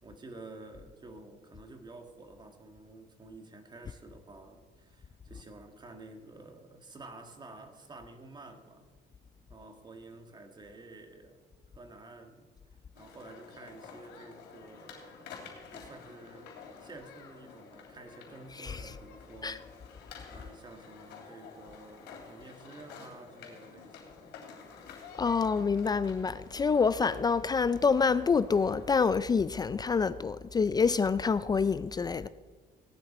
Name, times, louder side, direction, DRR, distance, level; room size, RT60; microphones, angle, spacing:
voice 1, 0.0-8.9 9.5-11.4 11.8-12.5 13.0-15.3 15.7-16.5 16.8-20.0 20.3-24.3, right 2 dB, 25° right, 1.8 m, -50 dB
sound 1, 12.9-29.4, left 5 dB, 90° left, 3.1 m, -50 dB
voice 2, 18.5-19.0 19.4-19.6 25.2-32.3, left 5 dB, 25° left, 0.4 m, -27 dB
18.0 x 10.5 x 4.3 m
cardioid pair, 110°, 17 cm